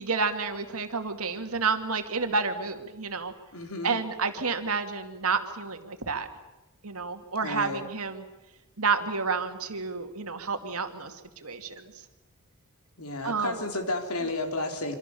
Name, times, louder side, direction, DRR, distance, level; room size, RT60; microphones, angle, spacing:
voice 1, 0.0-3.3 3.8-6.3 6.8-8.2 8.8-11.9 13.2-13.5, right 4 dB, 70° right, 6 dB, 2.4 m, -30 dB
voice 2, 3.5-4.0 7.4-7.8 13.0-14.9, left 2 dB, 80° left, 5 dB, 3.7 m, -32 dB
26.5 x 25.5 x 7.0 m, 1.0 s
head